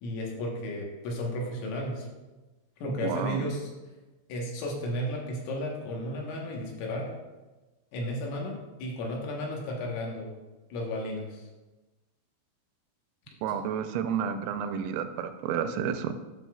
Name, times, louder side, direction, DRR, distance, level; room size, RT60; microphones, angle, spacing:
voice 1, 0.0-2.1 2.8-3.7 4.3-7.1 7.9-10.3 10.7-11.5, left 1 dB, 80° left, -1 dB, 3.7 m, -33 dB
voice 2, 3.0-3.5 13.4-16.1, right 8 dB, 90° right, 9 dB, 3.2 m, -30 dB
12.0 x 6.1 x 2.3 m, 1.2 s
omnidirectional pair, 5.8 m